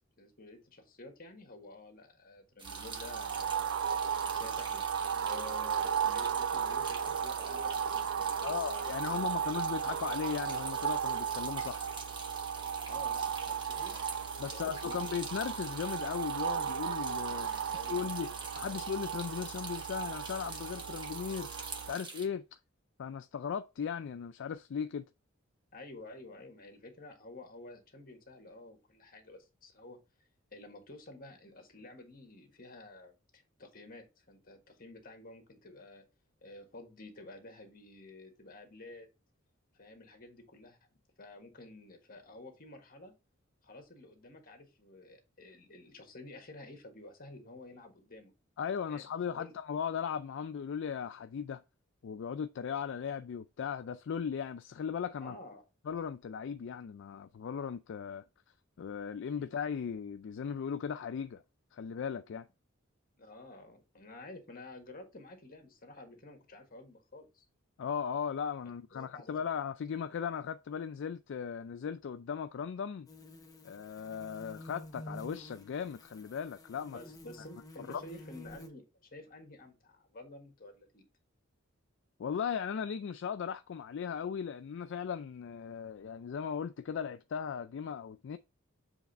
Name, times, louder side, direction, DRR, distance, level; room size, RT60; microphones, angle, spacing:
voice 1, 0.2-3.8 4.2-4.9 5.2-9.5 12.9-14.0 14.4-15.0 17.3-18.3 18.6-18.8 25.7-30.0 30.5-36.0 36.4-39.1 39.7-40.8 41.2-43.1 43.6-48.3 48.9-49.1 49.4-49.5 55.2-55.6 63.2-67.4 68.9-69.5 76.9-81.0, left 2 dB, 45° left, 1.5 m, -51 dB
sound 1, 2.6-22.3, right 4 dB, 25° right, 1.2 m, -46 dB
sound 2, 2.7-21.9, right 7 dB, 65° right, 0.4 m, -35 dB
voice 2, 8.4-11.9 14.4-17.5 17.9-22.6 23.0-25.1 48.6-51.6 52.0-55.4 55.9-58.2 58.8-61.4 61.7-62.5 67.8-73.1 73.6-77.0 77.9-78.0 82.2-88.4, left 7 dB, 65° left, 0.3 m, -37 dB
sound 3, 73.1-78.7, left 1 dB, 20° left, 0.8 m, -50 dB
7.2 x 3.4 x 4.0 m
head